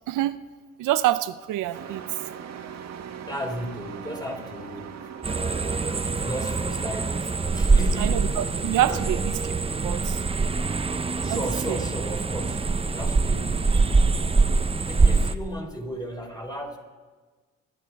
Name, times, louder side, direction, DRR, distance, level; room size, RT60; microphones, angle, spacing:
voice 1, 0.1-0.4 0.8-2.0 8.0-9.5 9.8-10.2 11.3-11.4 11.7-11.8, right 13 dB, 85° right, 0.7 m, -26 dB
Truck, 1.7-9.1, right 7 dB, 60° right, 1.8 m, -41 dB
voice 2, 3.2-8.1 8.9-9.0 11.2-12.7 12.9-14.1 14.8-16.8, equal, 15° left, 3.9 m, -35 dB
sound 1, 5.2-15.4, right 4 dB, 20° right, 0.6 m, -24 dB
25.5 x 11.5 x 4.7 m
cardioid pair, 90°, 30 cm